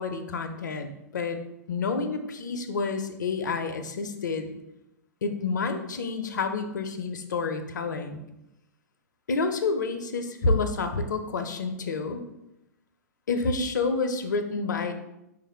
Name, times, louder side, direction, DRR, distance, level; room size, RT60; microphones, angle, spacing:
voice 1, 0.0-1.4 1.7-4.5 5.2-8.2 9.3-12.2 13.3-14.9, left 4 dB, 80° left, 7 dB, 0.6 m, -29 dB
4.9 x 2.5 x 4.2 m, 0.90 s
hypercardioid pair, 110°, 10 cm